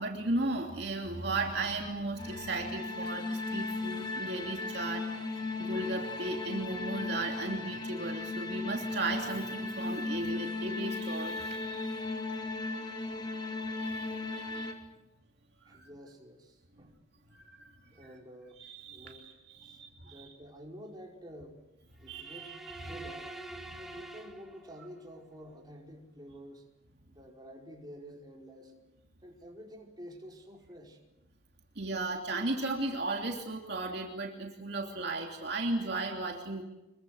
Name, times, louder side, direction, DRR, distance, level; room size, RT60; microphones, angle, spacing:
voice 1, 0.0-12.0 13.7-14.7 15.7-15.9 17.3-18.1 18.6-20.3 22.1-22.9 23.7-23.8 31.7-36.6, right 2 dB, 55° right, 1 dB, 3.0 m, -36 dB
sound 1, 2.2-14.7, left 3 dB, 20° left, 3.0 m, -36 dB
voice 2, 15.6-16.9 17.9-18.6 18.9-19.2 19.7-19.8 20.0-21.6 22.0-23.3 23.8-26.6 27.1-28.7 29.2-31.0, equal, 20° right, -1 dB, 4.9 m, -49 dB
sound 2, 22.0-25.1, right 2 dB, ahead, 2.2 m, -46 dB
26.5 x 23.0 x 8.0 m, 0.97 s
head